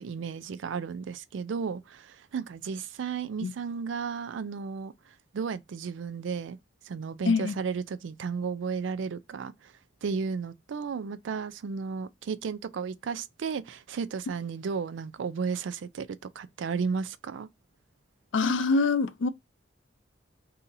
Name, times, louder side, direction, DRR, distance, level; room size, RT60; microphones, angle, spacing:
voice 1, 0.0-4.9 5.3-6.6 6.9-9.7 10.0-16.1 16.4-17.5, right 5 dB, 80° right, 0.4 m, -33 dB
voice 2, 18.3-19.3, left 4 dB, 80° left, 0.5 m, -24 dB
2.8 x 2.6 x 3.8 m
head